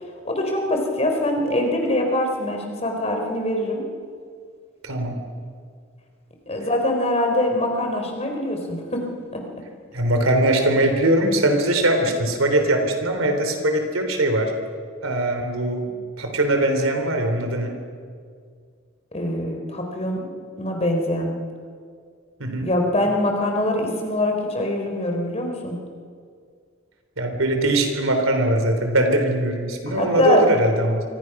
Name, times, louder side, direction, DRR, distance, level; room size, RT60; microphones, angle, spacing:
voice 1, 0.2-3.8 6.5-9.0 9.3-9.4 19.1-20.3 20.6-21.3 22.6-25.8 29.9-30.4, left 1 dB, 30° left, 2 dB, 4.1 m, -23 dB
voice 2, 4.8-5.2 9.9-14.5 15.0-17.7 22.4-22.7 27.2-31.0, right 1 dB, 80° right, 5 dB, 3.6 m, -21 dB
28.0 x 24.0 x 6.1 m, 2.1 s
head